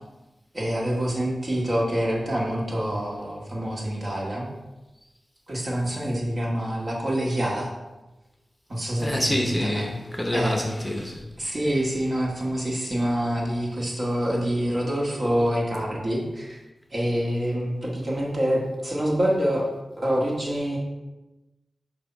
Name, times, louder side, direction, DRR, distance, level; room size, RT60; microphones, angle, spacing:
voice 1, 0.5-4.5 5.5-7.7 8.7-9.9 10.3-10.6 11.4-16.6 16.9-19.7 20.0-20.8, equal, 45° right, -3 dB, 1.7 m, -26 dB
voice 2, 9.0-11.2, left 1 dB, 10° left, 2 dB, 0.8 m, -27 dB
6.7 x 2.8 x 5.6 m, 1.1 s
cardioid pair, 55°, 0 cm